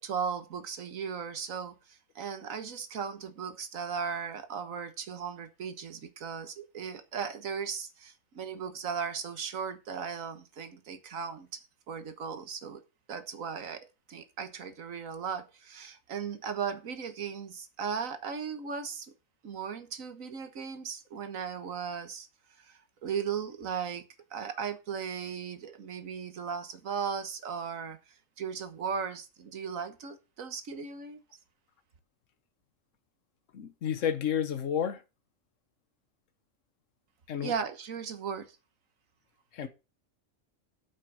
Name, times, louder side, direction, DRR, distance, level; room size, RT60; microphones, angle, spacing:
voice 1, 0.0-11.6 11.9-12.8 13.1-19.1 19.4-22.3 22.6-24.0 24.3-28.0 28.4-31.2 37.4-38.6, right 6 dB, 85° right, 1.6 m, -37 dB
voice 2, 33.5-35.0 37.3-37.6 39.5-39.7, left 8 dB, 70° left, 1.4 m, -31 dB
7.5 x 6.1 x 6.3 m
omnidirectional pair, 1.4 m